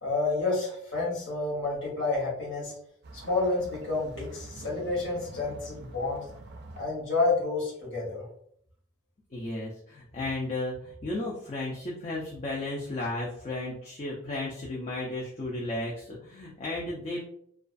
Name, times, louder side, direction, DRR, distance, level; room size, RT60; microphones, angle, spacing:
voice 1, 0.0-2.7 3.1-6.2 6.8-8.3, left 3 dB, 65° left, -6 dB, 1.0 m, -29 dB
sound 1, 3.0-6.8, right 2 dB, 55° right, 0.3 m, -46 dB
voice 2, 9.3-17.2, left 2 dB, 35° left, -4 dB, 0.4 m, -34 dB
2.3 x 2.3 x 2.5 m, 0.65 s
head